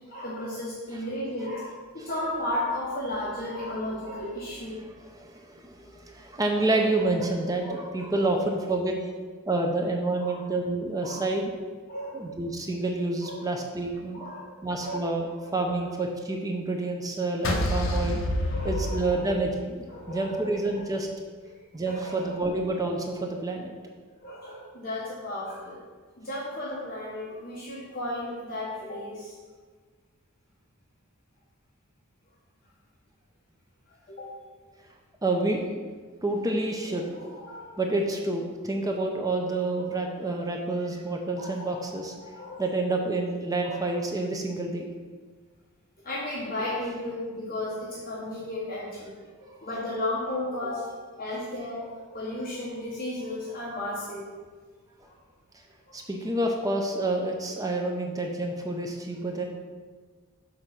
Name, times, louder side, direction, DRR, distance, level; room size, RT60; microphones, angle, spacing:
voice 1, 0.1-4.8 7.6-7.8 8.1-8.3 10.2-10.4 11.0-11.2 11.9-12.3 13.2-13.5 14.1-14.5 14.8-15.0 15.7-15.8 18.5-19.3 19.9-20.8 21.7-22.4 24.2-25.8 26.2-29.4 34.1-34.3 37.1-37.8 39.4-39.5 39.8-39.9 41.4-42.6 43.6-43.8 46.0-49.1 49.4-50.9 51.2-54.3 55.1-55.2 55.9-56.0, left 1 dB, 40° left, -6 dB, 1.1 m, -34 dB
voice 2, 4.7-9.0 9.5-11.5 12.1-14.2 14.6-15.3 15.5-18.2 18.6-21.1 21.7-23.7 35.2-35.8 36.2-37.2 37.8-42.2 42.6-44.8 55.9-59.4, right 2 dB, 15° right, 2 dB, 0.5 m, -28 dB
sound 1, 17.4-19.8, equal, 60° left, 0.8 m, -28 dB
6.2 x 3.9 x 5.7 m, 1.5 s
head